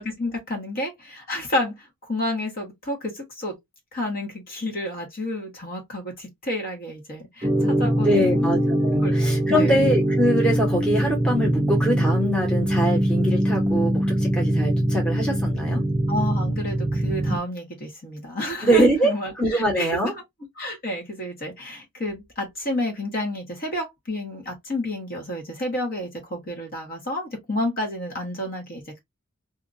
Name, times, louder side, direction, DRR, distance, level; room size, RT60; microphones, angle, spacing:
voice 1, 0.0-3.6 3.9-8.5 9.0-9.1 9.5-9.8 16.1-20.0 20.6-29.0, left 1 dB, 45° left, 1.2 m, -30 dB
sound 1, 7.4-17.4, right 1 dB, 20° right, 0.6 m, -22 dB
voice 2, 8.0-15.8 18.6-20.1, right 1 dB, 5° left, 1.0 m, -23 dB
2.7 x 2.5 x 2.5 m
head